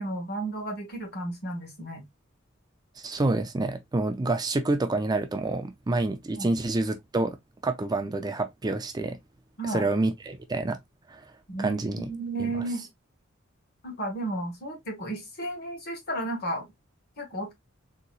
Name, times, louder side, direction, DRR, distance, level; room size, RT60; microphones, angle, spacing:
voice 1, 0.0-2.0 6.3-6.5 9.6-9.9 11.5-12.9 13.8-16.7 17.2-17.5, right 2 dB, 50° left, 1.5 m, -33 dB
voice 2, 3.0-7.4 7.6-9.2 9.7-10.8 11.1-11.2 11.6-12.1 12.4-12.5, right 2 dB, 20° right, 0.4 m, -28 dB
4.0 x 2.9 x 2.4 m
head